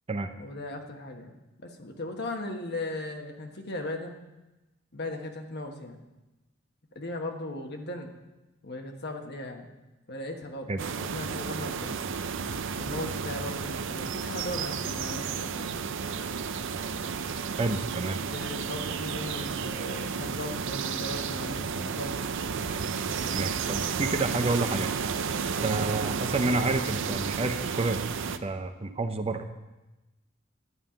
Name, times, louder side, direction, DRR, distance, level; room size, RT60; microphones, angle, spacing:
voice 1, 0.4-4.2 4.9-6.0 6.9-8.1 8.6-9.7 10.1-10.7 11.0-12.0 12.8-15.7 18.2-22.3 25.9-26.1, left 1 dB, 55° left, 3 dB, 1.3 m, -37 dB
sound 1, 10.8-28.4, right 6 dB, 65° right, 0.6 m, -32 dB
voice 2, 17.6-18.2 23.3-24.9 25.6-28.0 28.4-29.5, right 2 dB, 30° right, 7 dB, 0.7 m, -29 dB
11.5 x 5.5 x 8.9 m, 1.0 s
head